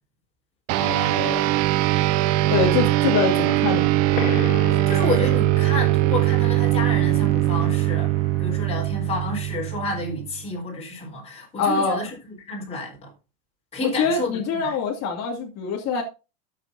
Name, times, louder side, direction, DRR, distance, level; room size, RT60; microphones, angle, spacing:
sound 1, 0.7-10.4, right 15 dB, 40° right, 0.5 m, -21 dB
voice 1, 0.8-1.5 2.5-3.9 11.6-12.0 13.8-16.0, left 5 dB, 40° left, 2.6 m, -24 dB
sound 2, 4.1-9.4, left 7 dB, 65° left, 3.0 m, -37 dB
voice 2, 4.6-8.1 8.4-13.1 13.7-14.3 14.6-14.8, left 3 dB, 15° left, 4.3 m, -30 dB
13.0 x 8.1 x 2.7 m
supercardioid pair, 140°, 42 cm